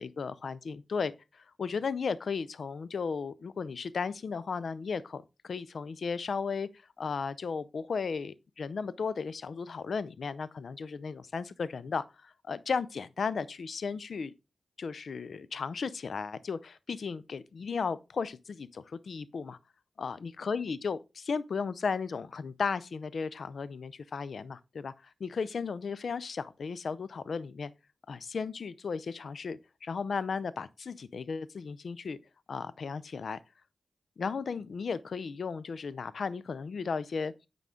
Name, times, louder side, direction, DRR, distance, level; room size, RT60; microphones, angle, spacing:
voice 1, 0.0-6.7 7.0-14.3 14.8-19.6 20.0-27.7 28.1-32.2 32.5-33.4 34.2-37.3, left 5 dB, 75° left, 0.4 m, -35 dB
9.1 x 3.7 x 3.7 m
cardioid pair, 55°, 0 cm